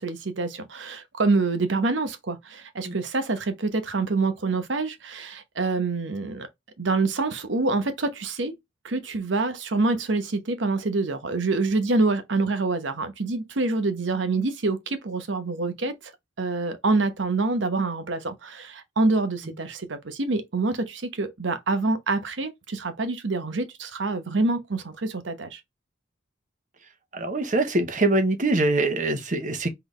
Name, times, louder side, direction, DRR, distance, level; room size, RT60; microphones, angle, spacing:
voice 1, 0.0-6.5 6.8-8.5 8.8-16.1 16.4-25.6, right 3 dB, 80° right, 0.9 m, -26 dB
voice 2, 27.1-29.7, right 2 dB, 40° right, 0.9 m, -23 dB
3.9 x 3.4 x 3.2 m
head